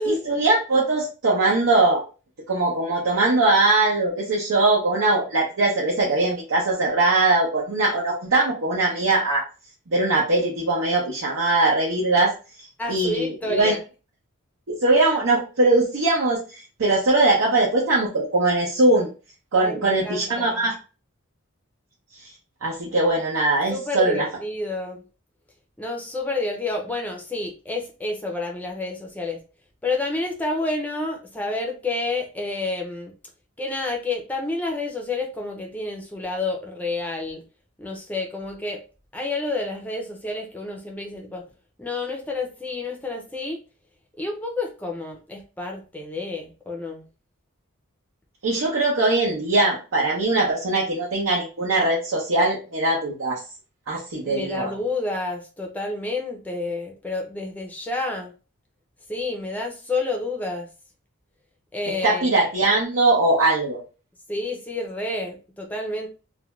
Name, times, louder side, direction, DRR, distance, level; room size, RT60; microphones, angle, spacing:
voice 1, 0.0-2.0 2.5-9.4 9.9-12.3 12.9-13.7 14.7-19.1 19.5-20.7 22.6-24.3 48.4-53.4 53.9-54.7 62.0-63.8, right 2 dB, 70° right, -3 dB, 0.7 m, -21 dB
voice 2, 12.8-13.8 19.6-20.7 23.7-25.0 25.8-29.4 29.8-33.1 33.6-37.4 37.8-38.8 39.1-41.4 41.8-43.6 44.2-47.1 54.2-58.3 59.1-60.7 61.7-62.3 64.3-66.1, left 2 dB, 5° left, 1 dB, 0.5 m, -29 dB
2.5 x 2.2 x 3.0 m, 0.34 s
head